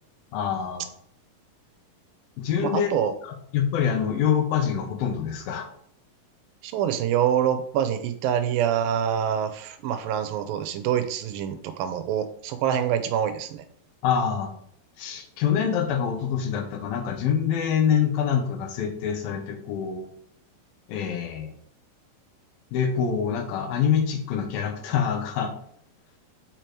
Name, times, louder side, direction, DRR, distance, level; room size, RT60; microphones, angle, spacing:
voice 1, 0.3-0.9 2.4-2.9 3.5-5.7 14.0-14.5 15.0-20.1 20.9-21.5 22.7-25.5, left 8 dB, 85° left, 6 dB, 2.9 m, -25 dB
voice 2, 2.6-3.1 6.6-13.6, right 9 dB, 85° right, 9 dB, 2.4 m, -26 dB
7.6 x 4.5 x 4.6 m, 0.64 s
omnidirectional pair, 4.2 m